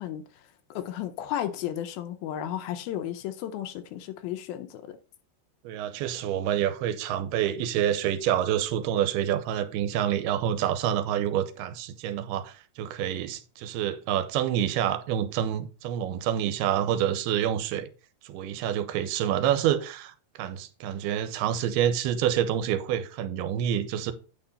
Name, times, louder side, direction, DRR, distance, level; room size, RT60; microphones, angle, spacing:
voice 1, 0.0-5.0, left 11 dB, 80° left, 2.4 m, -34 dB
voice 2, 5.6-17.9 18.2-24.1, right 10 dB, 85° right, 2.7 m, -27 dB
9.0 x 4.7 x 5.4 m
omnidirectional pair, 4.5 m